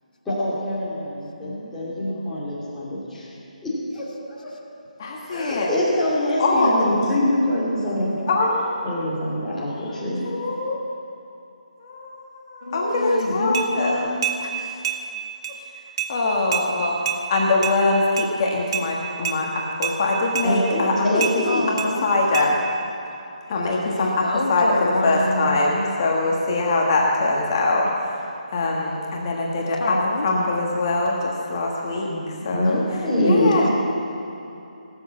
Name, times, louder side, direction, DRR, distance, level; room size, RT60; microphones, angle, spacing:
voice 1, 0.2-3.3 3.6-4.5 5.3-8.2 8.8-10.3 20.4-21.6 32.1-33.7, left 1 dB, 5° left, -11 dB, 2.7 m, -24 dB
voice 2, 1.4-1.7 2.0-2.3 5.0-5.7 6.4-7.0 8.3-9.0 9.8-10.8 11.8-14.1 14.4-14.5 16.1-17.0 17.3-21.6 22.0-22.6 23.5-28.2 28.5-29.9 30.2-32.8 33.2-33.7, left 2 dB, 30° left, -2 dB, 1.5 m, -23 dB
voice 3, 12.6-14.2 21.5-22.1 24.0-25.6 29.8-30.3, left 1 dB, 80° left, 2 dB, 1.9 m, -26 dB
sound 1, 13.5-13.7 14.2-14.4 14.8-15.0 15.4-15.6 16.0-16.1 16.5-16.7 17.1-17.2 17.6-17.8 18.2-18.3 18.7-18.9 19.3-19.4 19.8-20.0 20.4-20.5 21.2-21.4 21.8-21.9 22.3-22.5, right 9 dB, 40° right, 1.2 m, -26 dB
18.0 x 7.4 x 7.2 m, 2.8 s
hypercardioid pair, 170°, 4 cm